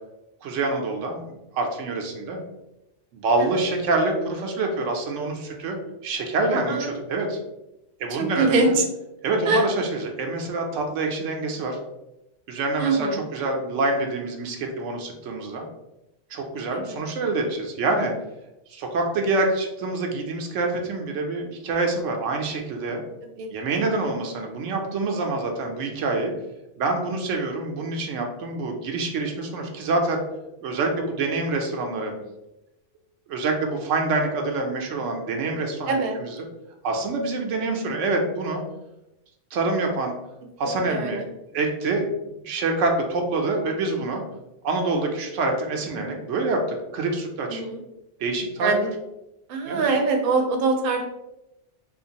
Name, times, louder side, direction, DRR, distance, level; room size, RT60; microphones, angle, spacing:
voice 1, 0.4-2.4 3.1-5.8 6.0-7.4 8.0-8.7 9.2-11.8 12.5-15.6 16.3-18.1 18.7-23.0 23.5-26.3 26.8-30.2 30.6-32.1 33.3-36.0 36.8-38.6 39.5-40.1 40.6-41.2 41.5-44.2 44.6-47.6 48.2-48.7 49.6-49.9, right 2 dB, 90° right, 2 dB, 1.0 m, -26 dB
voice 2, 6.5-6.9 8.2-8.8 9.4-9.6 12.8-13.2 16.7-17.0 23.4-23.5 24.0-24.1 35.9-36.2 40.6-41.2 47.5-47.8 48.6-48.9 49.5-51.1, right 3 dB, 60° right, 3 dB, 0.7 m, -24 dB
3.8 x 2.5 x 2.8 m, 0.92 s
omnidirectional pair, 1.2 m